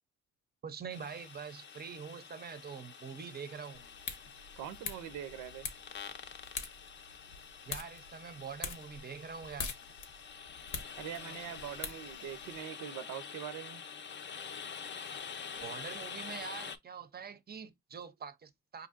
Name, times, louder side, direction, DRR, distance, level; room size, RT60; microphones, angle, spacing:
voice 1, 0.6-3.8 7.6-9.8 15.6-18.9, right 6 dB, 30° right, 0.6 m, -44 dB
sound 1, 0.9-16.8, left 6 dB, 40° left, 0.5 m, -47 dB
sound 2, 3.7-12.6, left 5 dB, 85° left, 0.8 m, -45 dB
voice 2, 4.6-5.7 11.0-13.8, right 10 dB, 85° right, 0.6 m, -43 dB
4.8 x 2.6 x 2.4 m
cardioid pair, 90°, 30 cm